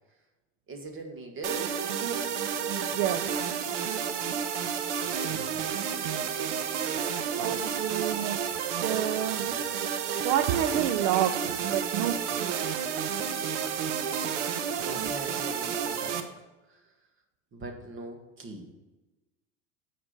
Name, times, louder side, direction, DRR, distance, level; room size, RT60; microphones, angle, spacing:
voice 1, 0.7-1.8 5.0-5.6 7.3-7.6 14.3-14.4 14.7-16.2 16.7-16.8 17.5-18.7, right 3 dB, 30° right, 4 dB, 1.8 m, -41 dB
sound 1, 1.4-16.2, right 7 dB, 65° right, 1.0 m, -31 dB
voice 2, 2.7-3.2 7.4-9.6 10.0-12.6, right 11 dB, 45° right, 9 dB, 0.7 m, -30 dB
8.8 x 5.1 x 5.6 m, 1.1 s
hypercardioid pair, 80°, 39 cm